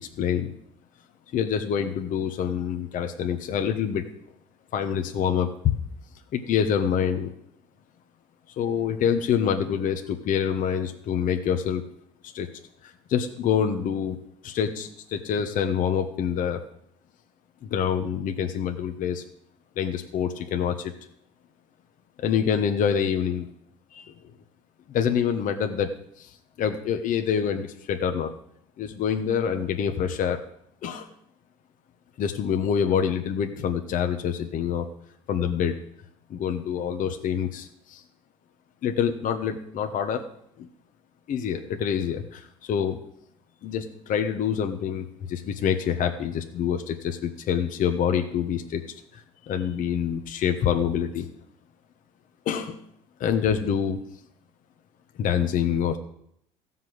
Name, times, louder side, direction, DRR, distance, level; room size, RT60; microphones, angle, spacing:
voice 1, 0.2-0.5 1.3-4.0 4.7-5.8 6.3-7.3 8.6-11.8 12.3-12.5 12.8-14.2 14.4-16.6 17.6-19.2 19.8-20.9 22.2-23.5 23.9-24.1 24.9-25.9 26.2-28.3 28.8-30.4 30.8-31.1 32.2-34.9 35.3-35.8 36.3-38.0 38.8-40.3 40.6-40.7 41.3-43.0 43.6-51.3 52.4-52.8 53.2-54.0 55.2-56.0, left 8 dB, 50° left, 5 dB, 1.3 m, -26 dB
15.0 x 5.7 x 7.9 m, 0.71 s
hypercardioid pair, 70°, 17 cm